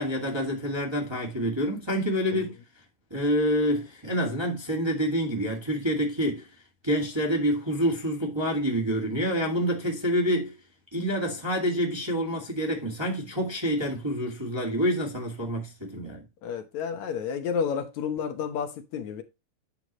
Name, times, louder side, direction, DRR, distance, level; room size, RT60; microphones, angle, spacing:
voice 1, 0.0-2.6 3.1-6.5 6.8-10.5 10.9-16.2, equal, 10° right, 1.6 m, -27 dB
voice 2, 16.4-19.2, left 6 dB, 75° left, 2.5 m, -31 dB
9.8 x 6.9 x 3.0 m
omnidirectional pair, 3.3 m